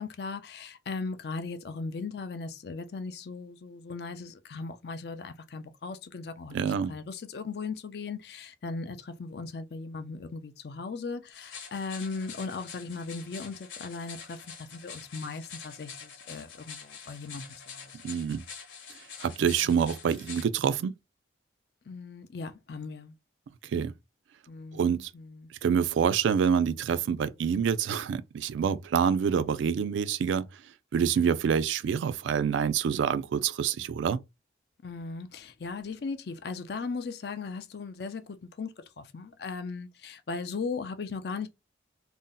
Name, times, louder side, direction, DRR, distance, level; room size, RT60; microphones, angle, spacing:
voice 1, 0.0-17.9 19.7-19.9 21.9-23.1 24.5-25.5 34.8-41.5, left 4 dB, 55° left, 0.4 m, -38 dB
voice 2, 6.5-6.9 18.0-18.4 19.2-20.9 23.7-23.9 24.7-25.1 25.6-30.5 30.9-34.2, right 7 dB, 75° right, 0.3 m, -26 dB
sound 1, 11.3-20.5, left 6 dB, 85° left, 1.0 m, -46 dB
2.6 x 2.0 x 3.8 m
head